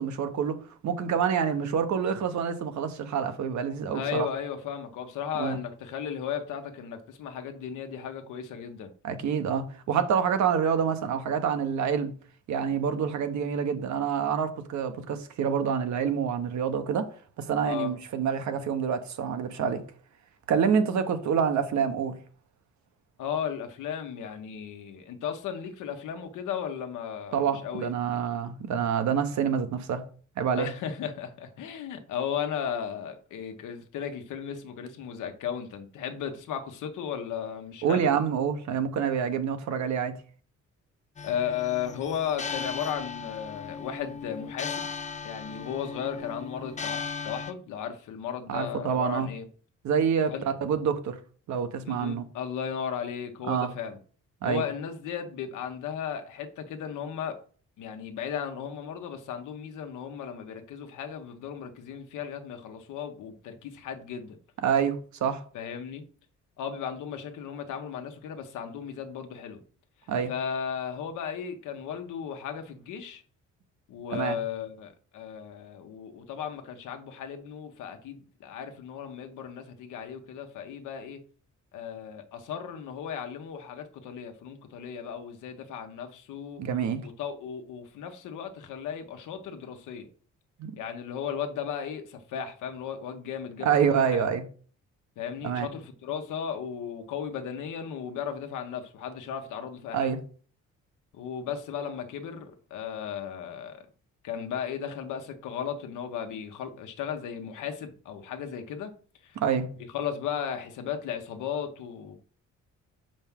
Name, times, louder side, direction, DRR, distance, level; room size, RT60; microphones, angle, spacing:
voice 1, 0.0-4.3 5.3-5.6 9.0-12.1 12.5-17.1 17.4-19.8 20.5-22.1 27.3-30.0 30.4-30.7 37.8-40.1 48.5-49.3 49.8-51.2 51.5-52.2 53.5-53.7 54.4-54.6 64.6-65.4 70.1-70.3 74.1-74.4 86.6-87.0 90.6-90.7 93.6-94.4 95.4-95.7 99.9-100.2 109.4-109.7, right 7 dB, 70° right, 1.0 m, -27 dB
voice 2, 3.9-8.9 17.6-17.9 23.2-27.9 30.6-38.1 41.2-44.9 45.2-49.4 50.3-50.5 51.8-54.0 54.4-57.4 57.8-64.4 65.5-66.0 66.6-69.6 70.3-73.2 73.9-81.2 81.7-86.6 87.0-90.1 90.8-94.2 95.2-100.1 101.1-103.9 104.2-108.9 109.2-109.4 109.9-112.2, left 8 dB, 85° left, 1.1 m, -35 dB
sound 1, 41.2-47.5, left 5 dB, 25° left, 0.5 m, -37 dB
5.8 x 5.2 x 3.6 m
cardioid pair, 90°, 30 cm